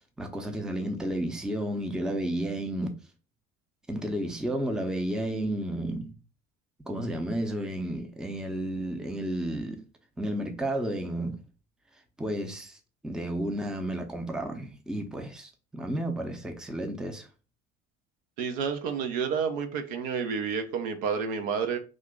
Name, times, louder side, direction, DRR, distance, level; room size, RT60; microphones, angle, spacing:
voice 1, 0.0-2.9 3.9-6.1 6.8-9.8 10.2-11.4 12.2-12.8 13.0-17.3, right 1 dB, ahead, 0.6 m, -32 dB
voice 2, 18.4-21.8, right 6 dB, 60° right, 0.6 m, -30 dB
2.8 x 2.5 x 3.5 m
figure-of-eight pair, 55°, 37 cm